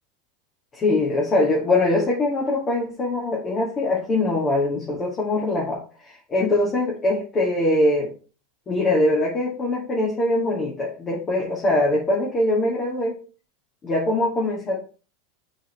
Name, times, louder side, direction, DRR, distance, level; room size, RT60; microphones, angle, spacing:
voice 1, 0.7-8.1 8.7-13.1 13.8-14.8, left 2 dB, 30° left, -3 dB, 2.2 m, -22 dB
9.1 x 4.3 x 3.3 m, 0.36 s
hypercardioid pair, 90°, 0 cm